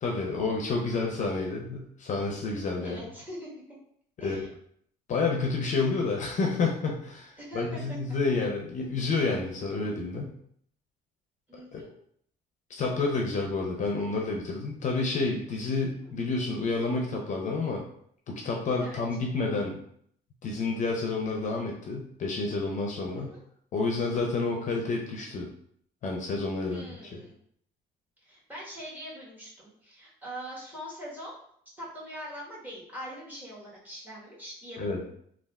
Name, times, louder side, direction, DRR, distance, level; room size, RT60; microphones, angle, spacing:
voice 1, 0.0-3.0 4.2-4.4 5.1-10.3 11.7-11.8 12.7-17.8 18.3-19.8 20.4-23.3 23.7-25.5 26.0-26.8 27.1-27.2 34.8-35.0, left 3 dB, 45° left, 0 dB, 0.5 m, -29 dB
voice 2, 2.8-3.5 4.2-4.5 7.4-7.8 11.5-12.0 16.0-16.1 18.8-19.0 23.1-23.4 26.7-27.4 28.2-31.4 31.8-35.1, equal, 10° right, -6 dB, 1.2 m, -42 dB
3.3 x 2.3 x 2.3 m, 0.66 s
cardioid pair, 110°, 17 cm